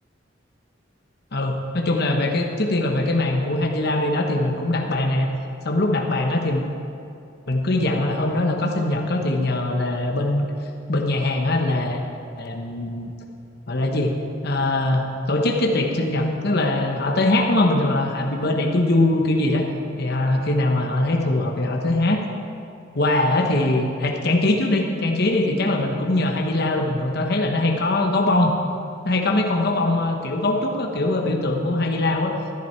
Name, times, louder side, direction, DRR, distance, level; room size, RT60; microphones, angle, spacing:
voice 1, 1.3-5.3 5.6-6.6 7.5-10.4 10.9-12.0 12.4-13.1 13.7-14.2 14.4-19.7 20.0-22.2 22.9-28.5 29.0-32.3, left 2 dB, 55° left, 2 dB, 1.1 m, -22 dB
13.5 x 11.5 x 4.5 m, 2.6 s
head